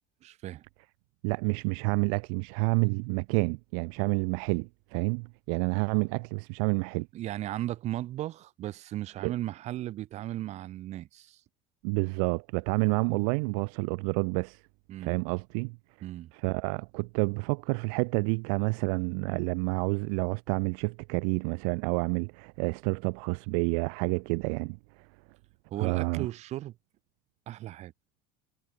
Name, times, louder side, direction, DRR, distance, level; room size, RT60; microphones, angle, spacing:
voice 1, 0.2-0.6 7.1-11.4 14.9-15.2 16.0-16.3 25.7-26.8 27.5-27.9, right 14 dB, 40° right, 2.1 m, -36 dB
voice 2, 1.2-7.1 9.2-9.3 11.8-14.6 15.0-15.8 16.4-24.8 25.8-26.3, right 40 dB or more, 70° right, 0.8 m, -29 dB
cardioid pair, 160°, 18 cm